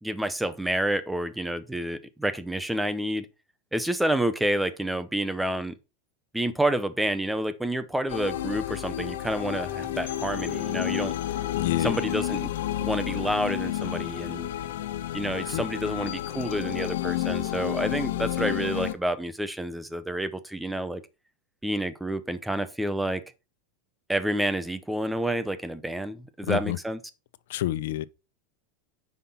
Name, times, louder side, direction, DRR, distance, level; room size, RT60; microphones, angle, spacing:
voice 1, 0.0-3.3 3.7-5.8 6.3-11.1 11.8-12.5 12.8-14.5 15.1-21.0 21.6-23.2 24.1-27.0, right 1 dB, 5° right, 0.7 m, -29 dB
sound 1, 8.1-18.9, left 13 dB, 90° left, 1.4 m, -30 dB
voice 2, 11.5-12.0 15.5-15.6 26.5-26.8 27.5-28.1, left 14 dB, 65° left, 0.7 m, -28 dB
9.6 x 5.8 x 4.2 m
supercardioid pair, 180°, 0 cm